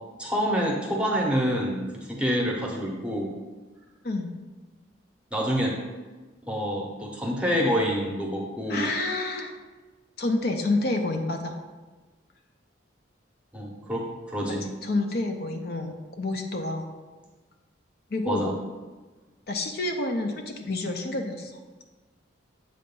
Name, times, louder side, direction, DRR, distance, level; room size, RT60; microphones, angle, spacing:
voice 1, 0.2-3.3 5.3-5.8 6.5-8.9 13.5-14.6 18.2-18.6, equal, 5° right, -2 dB, 0.8 m, -27 dB
voice 2, 8.7-9.5 10.2-11.5 14.6-16.9 18.1-18.5 19.5-21.5, left 2 dB, 50° left, 4 dB, 0.5 m, -28 dB
7.6 x 2.5 x 5.3 m, 1.3 s
head